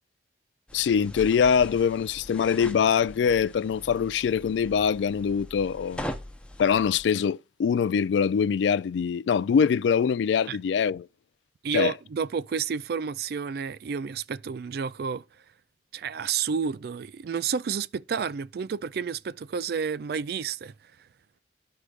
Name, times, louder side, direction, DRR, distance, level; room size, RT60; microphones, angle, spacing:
voice 1, 0.7-6.0 6.6-11.1 11.7-11.9, left 7 dB, 80° left, 0.3 m, -23 dB
clothes thrown on wooden floor, 0.7-7.0, left 1 dB, 5° left, 0.7 m, -41 dB
voice 2, 11.6-15.2 15.9-20.7, right 6 dB, 60° right, 0.3 m, -30 dB
14.0 x 4.8 x 2.4 m
head